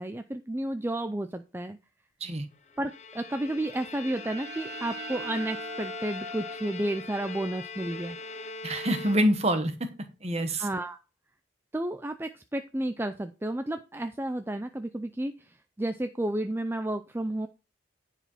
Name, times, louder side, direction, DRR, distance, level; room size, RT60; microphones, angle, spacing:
voice 1, 0.0-1.8 2.8-8.2 10.6-11.0 11.7-17.5, right 1 dB, 10° right, 8 dB, 0.4 m, -32 dB
Bowed string instrument, 2.7-9.6, left 3 dB, 35° left, 0.7 m, -41 dB
sound 1, 3.6-9.0, right 1 dB, 60° right, 2.3 m, -43 dB
voice 2, 8.6-10.7, equal, 35° right, 8 dB, 1.3 m, -26 dB
10.5 x 4.9 x 5.5 m, 0.31 s
head